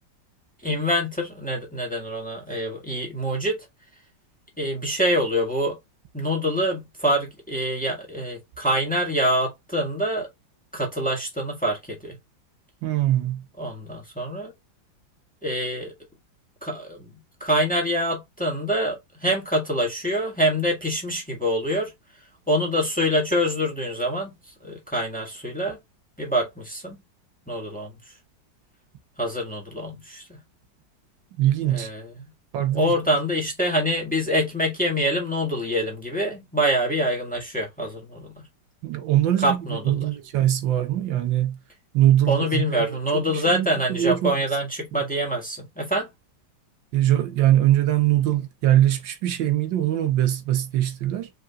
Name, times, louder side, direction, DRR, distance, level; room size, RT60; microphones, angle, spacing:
voice 1, 0.6-3.6 4.6-5.8 6.1-10.3 10.7-12.1 13.6-14.5 15.4-15.9 16.6-21.9 22.5-24.3 24.6-25.8 26.2-27.0 27.5-27.9 29.2-30.4 31.7-32.3 32.7-38.5 39.4-40.0 42.3-46.1, equal, 5° left, 1.7 m, -25 dB
voice 2, 12.8-13.4 31.4-31.9 32.5-32.9 38.8-41.6 41.9-44.3 46.9-51.3, right 12 dB, 80° right, 1.5 m, -22 dB
5.0 x 4.0 x 2.4 m
omnidirectional pair, 2.0 m